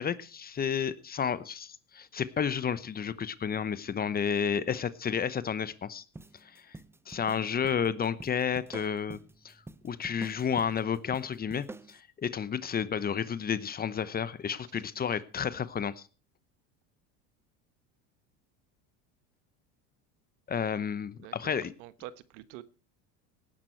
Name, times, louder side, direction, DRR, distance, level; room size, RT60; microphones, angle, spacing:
voice 1, 0.0-6.0 6.4-6.8 7.1-9.2 9.4-9.5 9.8-16.1 20.5-21.7, left 7 dB, 25° left, 0.9 m, -31 dB
sound 1, 6.1-12.0, right 2 dB, 5° right, 0.6 m, -47 dB
voice 2, 21.1-22.6, right 14 dB, 75° right, 1.3 m, -47 dB
18.0 x 11.0 x 4.6 m
supercardioid pair, 115°, 37 cm